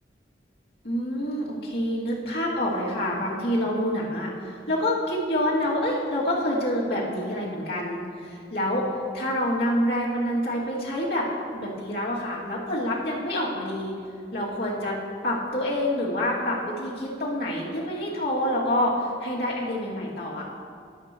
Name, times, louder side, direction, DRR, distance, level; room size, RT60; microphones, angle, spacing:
voice 1, 0.8-8.9 9.1-11.3 11.5-13.9 14.3-15.0 15.2-20.4, left 1 dB, 65° left, -5 dB, 2.5 m, -27 dB
22.5 x 8.1 x 3.0 m, 2.3 s
head